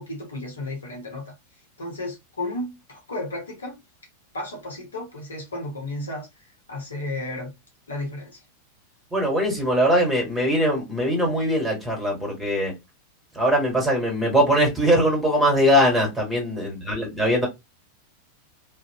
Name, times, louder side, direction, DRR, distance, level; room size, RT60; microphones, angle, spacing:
voice 1, 0.0-1.3 1.8-3.8 4.3-7.5 7.9-8.4, left 2 dB, 70° left, 0.9 m, -33 dB
voice 2, 9.1-12.7 13.3-17.5, equal, 5° right, 1.4 m, -21 dB
2.5 x 2.1 x 2.8 m
figure-of-eight pair, 90°, 0 cm